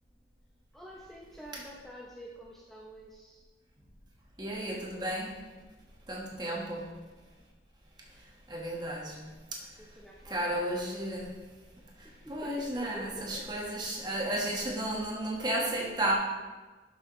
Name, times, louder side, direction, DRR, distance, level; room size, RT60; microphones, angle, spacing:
voice 1, 0.7-3.4 6.4-6.6 9.8-10.4 12.0-13.5, equal, ahead, -4 dB, 0.6 m, -48 dB
voice 2, 4.4-5.3 6.1-6.9 8.5-9.7 10.2-11.4 12.0-16.1, right 1 dB, 25° right, -2 dB, 1.4 m, -33 dB
11.5 x 6.6 x 3.1 m, 1.3 s
head